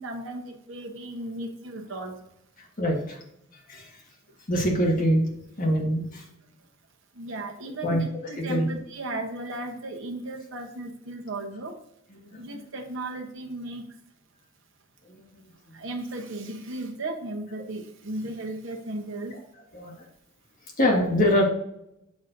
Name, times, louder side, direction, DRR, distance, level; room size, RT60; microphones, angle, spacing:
voice 1, 0.0-2.1 7.1-11.8 12.4-13.8 15.7-19.4, right 2 dB, 65° right, 3 dB, 1.0 m, -35 dB
voice 2, 2.8-3.2 3.7-4.0 4.5-5.2 5.6-6.2 7.8-8.0 8.4-8.6 12.1-12.6 15.1-15.4 19.7-20.0 20.8-21.4, equal, 40° left, -2 dB, 1.7 m, -24 dB
7.1 x 6.2 x 2.6 m, 0.78 s
head